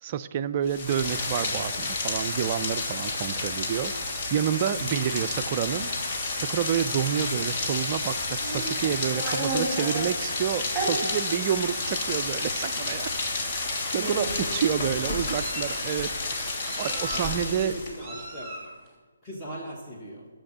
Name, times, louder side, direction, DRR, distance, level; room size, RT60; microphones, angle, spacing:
voice 1, 0.0-5.9 6.3-13.1 13.5-17.7, right 9 dB, 30° right, 12 dB, 0.4 m, -29 dB
Rain, 0.6-18.0, left 3 dB, 30° left, 1.5 m, -30 dB
Meow, 8.4-10.0 10.7-10.9 11.7-11.9 12.2-12.4 13.5-13.6 13.9-14.5 15.1-15.8 16.6-17.4 18.0-18.7, right 2 dB, 5° right, 2.6 m, -33 dB
voice 2, 14.5-15.2 17.0-18.5 19.2-20.3, equal, 15° left, -4 dB, 1.5 m, -39 dB
11.0 x 6.8 x 7.3 m, 1.4 s
figure-of-eight pair, 140°, 0 cm